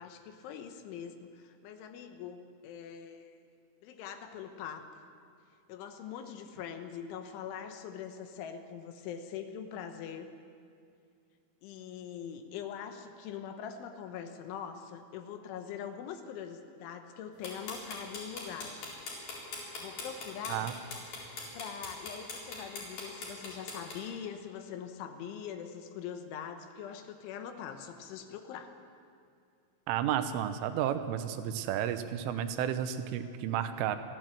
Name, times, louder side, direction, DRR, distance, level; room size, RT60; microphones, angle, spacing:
voice 1, 0.0-2.4 2.6-3.4 3.8-4.8 5.7-10.3 11.6-18.8 19.8-20.7 21.5-28.7, left 8 dB, 80° left, 7 dB, 3.4 m, -43 dB
sound 1, 17.4-23.9, left 3 dB, 50° left, 5.8 m, -41 dB
voice 2, 29.9-34.0, right 10 dB, 80° right, 10 dB, 3.5 m, -32 dB
29.5 x 12.0 x 7.6 m, 2.4 s
omnidirectional pair, 5.7 m